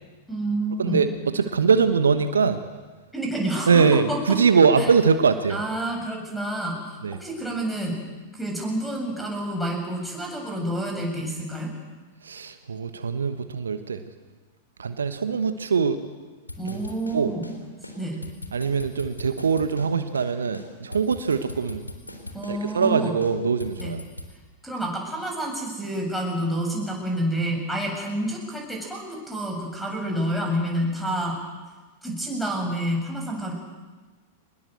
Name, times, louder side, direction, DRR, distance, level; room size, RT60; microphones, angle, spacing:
voice 1, 0.3-1.0 3.1-4.2 4.8-4.9 5.5-8.0 8.3-11.7 16.6-17.5 18.0-18.2 22.3-23.2 23.8-23.9 24.6-31.4 32.0-33.5, right 1 dB, ahead, 1 dB, 7.9 m, -28 dB
voice 2, 0.8-2.6 3.7-5.6 7.0-7.2 12.2-14.0 14.8-16.0 16.6-16.8 17.1-17.3 18.5-21.9 22.5-24.0, right 5 dB, 75° right, 10 dB, 1.3 m, -22 dB
sound 1, 16.5-17.6 17.8-18.0 18.2-19.9 20.1-20.3 20.5-22.6 22.8-23.0 23.2-24.3, left 2 dB, 90° left, 3.6 m, -39 dB
25.0 x 21.0 x 8.0 m, 1.3 s
figure-of-eight pair, 95°, 0 cm